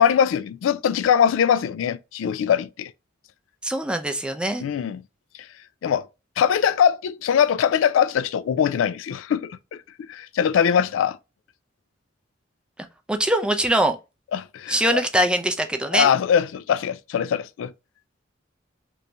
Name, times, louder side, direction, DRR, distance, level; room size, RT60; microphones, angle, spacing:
voice 1, 0.0-2.9 4.6-5.0 5.8-6.1 6.4-9.6 10.0-11.2 14.3-14.8 15.9-17.7, left 8 dB, 80° left, 0.3 m, -21 dB
voice 2, 3.6-4.6 13.1-14.0 14.7-16.1, right 1 dB, 5° right, 0.4 m, -22 dB
3.0 x 2.6 x 3.3 m
head